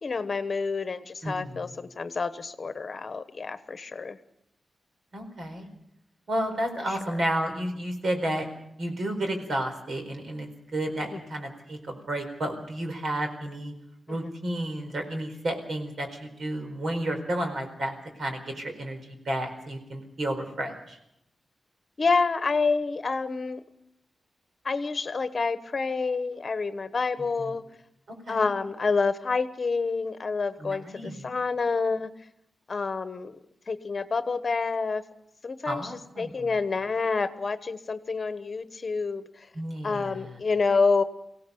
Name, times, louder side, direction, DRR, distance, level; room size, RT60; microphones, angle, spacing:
voice 1, 0.0-4.2 6.9-7.0 11.0-11.2 14.1-14.3 22.0-23.6 24.6-27.6 28.3-32.1 32.7-33.4 33.7-35.0 35.4-39.5 39.8-41.0, left 4 dB, 45° left, 11 dB, 1.1 m, -28 dB
voice 2, 1.2-1.6 5.1-5.7 6.3-8.5 8.8-13.7 14.1-21.0 28.3-28.5 30.6-31.3 35.7-36.5 39.5-40.2, right 1 dB, 65° right, 5 dB, 4.5 m, -32 dB
23.5 x 17.0 x 6.9 m, 0.79 s
wide cardioid pair, 105°, 0 cm